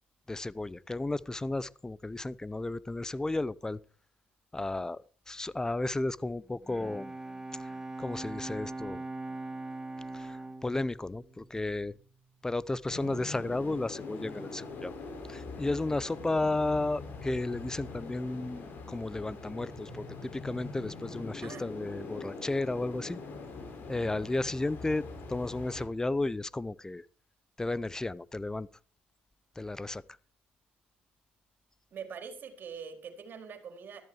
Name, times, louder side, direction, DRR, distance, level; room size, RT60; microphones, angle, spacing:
voice 1, 0.3-3.8 4.5-7.1 7.6-7.7 8.0-9.0 10.1-12.0 12.4-14.9 15.3-23.2 23.9-25.0 25.3-27.0 27.6-28.7 29.6-30.0, left 2 dB, 15° left, 0.8 m, -33 dB
Bowed string instrument, 6.4-12.2, right 2 dB, 10° right, 2.6 m, -41 dB
sound 1, 12.9-25.9, left 3 dB, 50° left, 6.7 m, -43 dB
voice 2, 31.9-34.0, right 6 dB, 50° right, 4.5 m, -43 dB
14.5 x 14.0 x 4.8 m
supercardioid pair, 75°, 4 cm